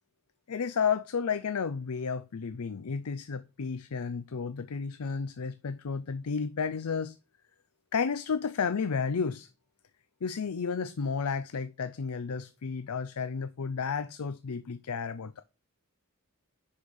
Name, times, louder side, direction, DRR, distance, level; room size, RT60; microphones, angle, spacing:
voice 1, 0.5-7.2 7.9-9.5 10.2-15.4, left 5 dB, 75° left, 0.5 m, -32 dB
10.0 x 4.9 x 3.6 m
head